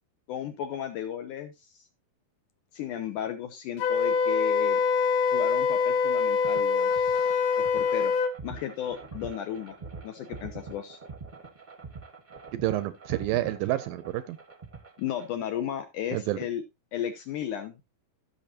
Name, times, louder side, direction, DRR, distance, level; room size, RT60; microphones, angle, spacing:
voice 1, 0.3-1.9 2.7-4.8 5.3-7.4 7.7-8.1 8.4-9.8 10.0-11.0 15.0-16.6 16.9-17.8, left 10 dB, 75° left, 2.0 m, -34 dB
Wind instrument woodwind instrument, 3.8-8.3, left 5 dB, 90° left, 1.4 m, -24 dB
sound 1, 6.4-15.3, right 4 dB, 40° right, 0.6 m, -44 dB
voice 2, 12.5-14.4 16.1-16.4, right 15 dB, 80° right, 2.1 m, -29 dB
15.5 x 6.3 x 2.8 m
omnidirectional pair, 4.4 m